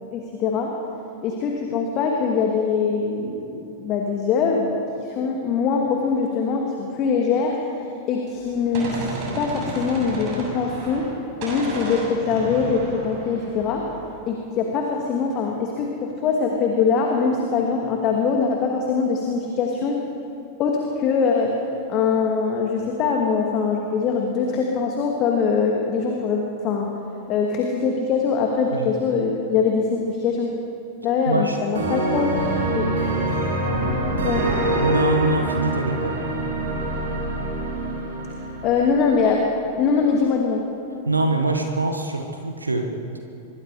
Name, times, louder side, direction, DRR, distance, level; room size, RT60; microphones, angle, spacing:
voice 1, 0.1-0.7 1.2-7.6 8.1-11.1 11.4-13.8 14.3-20.0 20.6-21.5 21.9-26.9 27.3-30.5 31.0-32.4 32.8-32.9 34.2-34.5 38.6-39.4 39.8-40.6, left 5 dB, 35° left, 1 dB, 2.5 m, -22 dB
Gunshot gunfire, 8.3-11.2 11.4-14.1, right 2 dB, 45° right, 7.1 m, -33 dB
voice 2, 31.3-31.6 34.8-36.2 41.1-42.9, right 2 dB, 80° right, 4 dB, 1.7 m, -23 dB
sound 1, 31.7-39.4, right 1 dB, 65° right, 5.1 m, -25 dB
25.5 x 22.5 x 5.1 m, 2.8 s
figure-of-eight pair, 90°, 0 cm